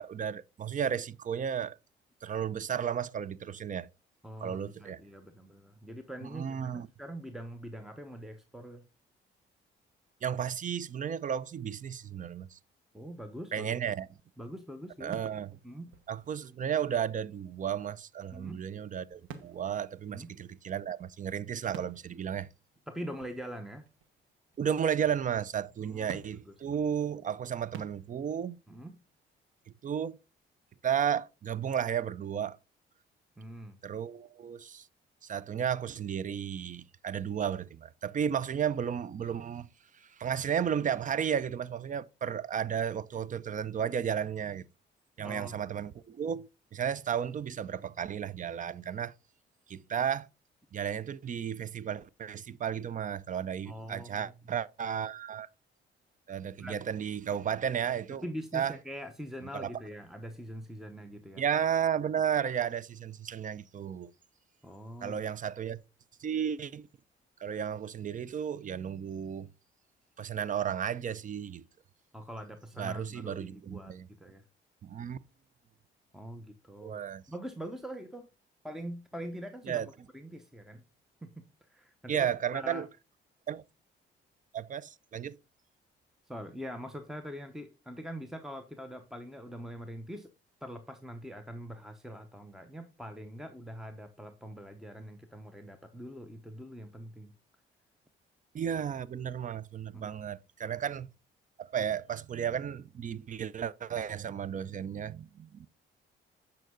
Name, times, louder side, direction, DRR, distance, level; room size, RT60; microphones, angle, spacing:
voice 1, 0.0-1.7 2.2-3.9 4.4-5.0 6.3-6.9 10.2-12.6 13.5-14.1 15.0-15.6 16.1-22.5 24.6-28.6 29.8-30.2 30.8-32.6 33.8-34.9 35.2-39.7 40.2-44.6 45.2-49.1 49.7-50.3 50.7-55.5 56.3-58.2 58.5-58.7 59.5-59.7 61.4-64.1 65.0-65.8 66.2-66.9 67.4-69.5 70.2-71.6 72.8-74.1 74.8-75.2 76.8-77.2 79.7-79.9 82.1-82.9 83.5-83.6 84.5-85.4 98.5-101.1 101.6-105.7, right 8 dB, 40° right, 0.5 m, -33 dB
voice 2, 4.2-8.8 12.9-13.7 14.4-15.2 15.6-16.0 18.3-18.6 20.1-20.3 22.9-23.9 25.8-26.8 28.7-29.0 33.4-33.8 45.2-45.6 53.7-54.5 56.6-56.8 58.2-61.4 64.6-65.2 72.1-74.4 76.1-77.0 77.3-78.3 78.6-80.8 81.2-81.4 81.7-82.9 86.3-90.3 90.6-97.3 99.9-100.1, equal, ahead, 0.9 m, -43 dB
sound 1, 13.0-13.7 14.1-14.2 15.1-17.0 19.1-20.8 21.2-21.3 21.7-24.6 24.9-25.7 26.1-29.2, right 8 dB, 90° right, 1.2 m, -51 dB
9.1 x 5.7 x 3.8 m
cardioid pair, 90°, 20 cm